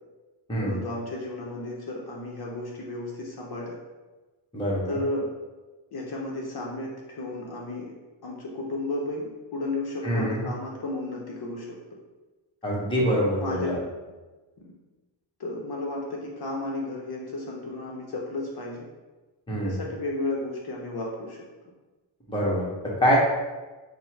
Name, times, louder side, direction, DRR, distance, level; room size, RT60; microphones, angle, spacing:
voice 1, 0.6-3.8 4.9-5.3 5.9-7.9 8.2-11.8 12.9-13.9 14.6-14.7 15.4-18.9 19.5-21.4, left 2 dB, 50° left, -2 dB, 0.7 m, -33 dB
voice 2, 4.5-5.0 10.0-10.5 12.6-13.7 19.5-19.7 22.3-23.2, equal, 10° left, -5 dB, 0.9 m, -25 dB
4.3 x 2.1 x 4.4 m, 1.2 s
wide cardioid pair, 140°, 49 cm